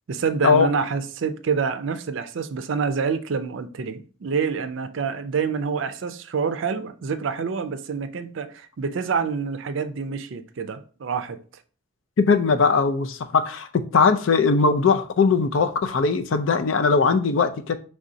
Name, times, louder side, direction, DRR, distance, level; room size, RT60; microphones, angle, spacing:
voice 1, 0.1-11.4, right 5 dB, 65° right, 0.4 m, -27 dB
voice 2, 12.2-17.8, left 4 dB, 70° left, 0.4 m, -20 dB
5.0 x 3.4 x 2.7 m
head